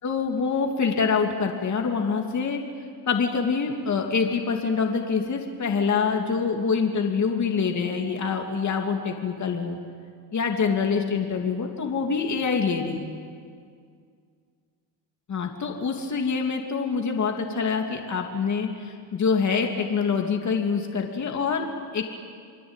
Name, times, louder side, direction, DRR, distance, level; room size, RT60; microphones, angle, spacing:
voice 1, 0.0-2.6 3.1-9.8 10.3-13.1 15.3-21.6 21.9-22.1, left 5 dB, 40° left, 2 dB, 2.9 m, -25 dB
28.5 x 22.0 x 9.1 m, 2.2 s
cardioid pair, 100°, 43 cm